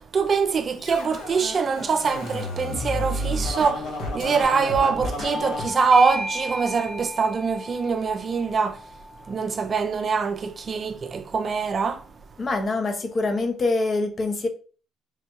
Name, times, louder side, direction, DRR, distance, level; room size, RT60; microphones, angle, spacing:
voice 1, 0.0-8.8 9.3-12.0, right 5 dB, 45° right, 0.4 m, -24 dB
Scratching (performance technique), 0.8-5.6, left 1 dB, 75° left, 1.0 m, -31 dB
Bell / Doorbell, 5.3-10.3, equal, 15° right, 0.7 m, -35 dB
voice 2, 12.4-14.5, left 3 dB, 40° left, 0.6 m, -25 dB
3.7 x 2.2 x 2.9 m
cardioid pair, 85°, 0 cm